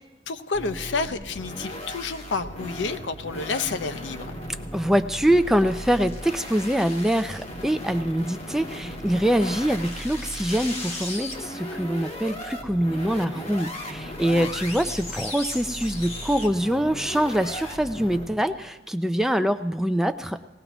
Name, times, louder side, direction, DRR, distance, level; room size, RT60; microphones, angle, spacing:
voice 1, 0.3-4.3 9.5-9.8 14.2-14.5, left 4 dB, 70° left, 12 dB, 0.6 m, -30 dB
sound 1, 0.5-18.3, left 1 dB, 35° left, 1.5 m, -36 dB
voice 2, 4.7-20.4, equal, ahead, 8 dB, 0.4 m, -24 dB
19.5 x 16.5 x 3.0 m, 1.0 s
head